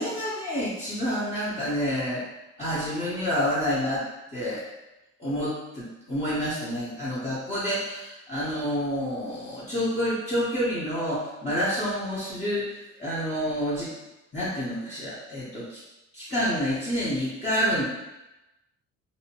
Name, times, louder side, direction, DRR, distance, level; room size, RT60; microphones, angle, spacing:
voice 1, 0.0-2.2 2.6-4.0 4.3-4.6 5.2-13.9 14.3-15.8 16.1-17.8, equal, 20° left, -10 dB, 0.8 m, -28 dB
2.7 x 2.2 x 2.8 m, 0.97 s
cardioid pair, 90°, 30 cm